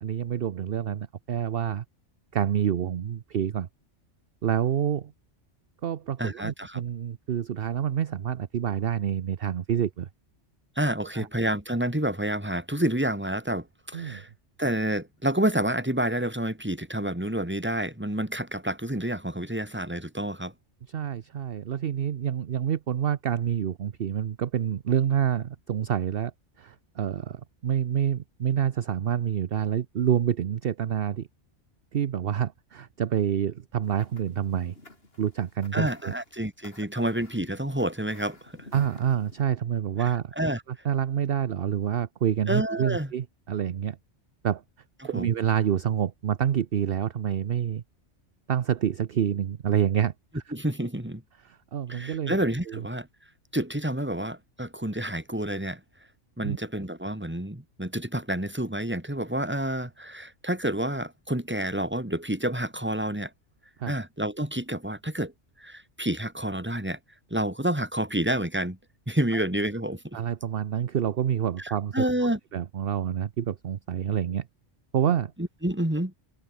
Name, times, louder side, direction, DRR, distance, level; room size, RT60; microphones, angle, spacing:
voice 1, 0.0-1.8 2.3-3.7 4.4-5.1 5.8-10.1 11.1-11.3 13.9-14.2 20.9-26.3 26.6-31.3 31.9-34.7 35.2-36.1 36.9-37.0 38.7-40.3 40.7-44.0 44.4-44.6 45.0-47.8 48.5-50.4 51.4-52.4 52.7-52.8 56.4-56.6 63.8-63.9 70.1-72.0 72.5-74.5 74.9-75.3, right 9 dB, 55° right, 0.9 m, -27 dB
voice 2, 6.2-6.8 10.8-14.3 14.6-20.5 35.7-38.5 40.0-40.1 40.4-40.6 42.5-43.1 45.1-45.3 50.5-51.2 51.9-53.1 53.5-55.8 56.4-63.3 63.9-65.3 65.6-67.0 67.3-68.8 69.1-70.2 71.6-72.4 75.4-76.1, right 1 dB, 10° right, 2.8 m, -29 dB
sound 1, 33.8-39.4, left 2 dB, 50° left, 4.8 m, -52 dB
omnidirectional pair, 1.3 m